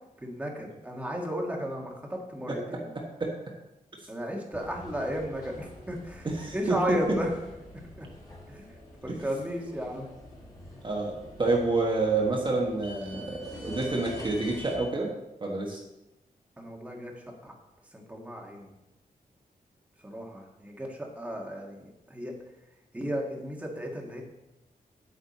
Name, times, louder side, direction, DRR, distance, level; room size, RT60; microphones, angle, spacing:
voice 1, 0.2-2.9 4.1-6.3 6.5-7.4 8.0-8.1 8.5-8.6 9.0-10.1 10.7-10.8 16.6-17.5 17.9-18.7 20.0-22.3 22.9-24.2, equal, 10° right, -1 dB, 1.6 m, -34 dB
voice 2, 2.5-3.3 6.2-7.2 9.2-9.3 10.8-15.1 15.4-15.8, right 3 dB, 35° right, -2 dB, 1.4 m, -29 dB
sound 1, 4.5-14.8, left 1 dB, 25° left, 2.6 m, -46 dB
9.0 x 8.6 x 4.2 m, 0.95 s
wide cardioid pair, 140°, 15 cm